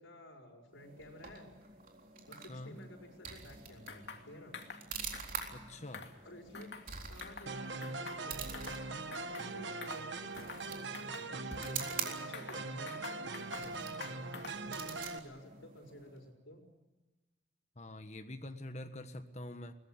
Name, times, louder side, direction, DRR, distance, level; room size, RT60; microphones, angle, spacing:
voice 1, 0.0-1.5 2.3-4.6 6.2-6.7 7.1-13.8 14.6-16.6, left 1 dB, 85° left, 1 dB, 5.1 m, -53 dB
sound 1, 0.7-16.3, right 6 dB, 45° right, 3.9 m, -47 dB
sound 2, 3.9-4.2 4.5-4.8 5.1-5.5 5.9-6.9 7.2-7.5 7.8-8.8 9.1-9.5 9.8-10.1 10.4-10.7 10.9-11.9 12.3-13.7 14.0-14.7, left 4 dB, 60° left, 2.6 m, -47 dB
voice 2, 5.5-6.0 17.8-19.7, left 1 dB, 35° left, 7 dB, 1.4 m, -45 dB
sound 3, 7.5-15.2, right 3 dB, 70° right, 1.4 m, -41 dB
23.0 x 19.5 x 8.9 m, 1.2 s
head